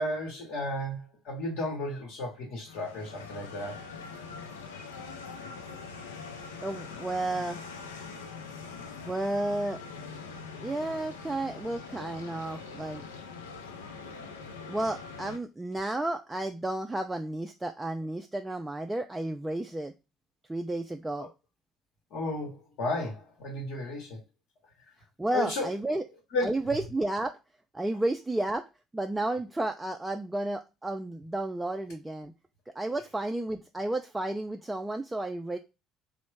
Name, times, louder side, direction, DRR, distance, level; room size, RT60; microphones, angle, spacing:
voice 1, 0.0-3.8 21.2-21.3 22.1-24.2 25.3-26.0 26.3-26.5, left 1 dB, 70° left, 0.9 m, -33 dB
sound 1, 2.7-15.4, left 4 dB, 85° left, 0.5 m, -43 dB
voice 2, 6.6-7.6 9.1-9.8 10.6-13.0 14.7-19.9 20.5-21.3 25.2-26.0 26.4-27.4 27.7-28.7 28.9-32.3 32.8-35.6, right 2 dB, 15° right, 0.4 m, -32 dB
2.9 x 2.0 x 3.2 m
hypercardioid pair, 60°, 0 cm